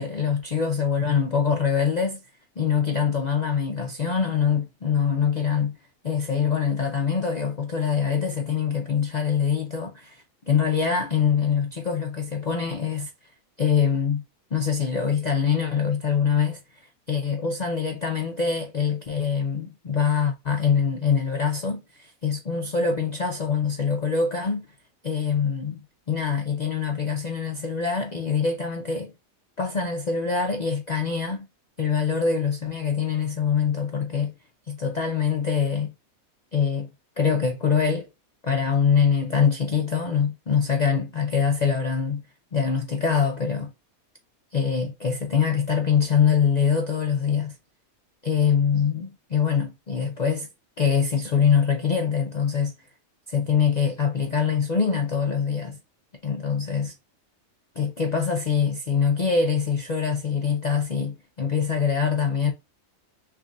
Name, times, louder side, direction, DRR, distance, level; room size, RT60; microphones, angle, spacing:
voice 1, 0.0-2.2 2.6-5.7 6.0-13.1 13.6-14.2 14.5-24.7 25.0-25.8 26.1-29.1 29.6-31.5 31.8-34.3 34.7-35.9 36.5-36.9 37.2-38.1 38.4-42.2 42.5-43.7 44.5-47.5 48.2-50.5 50.8-52.7 53.3-55.8 56.2-57.0 57.8-62.5, left 6 dB, 75° left, 0.4 m, -24 dB
3.5 x 2.5 x 3.3 m
omnidirectional pair, 1.5 m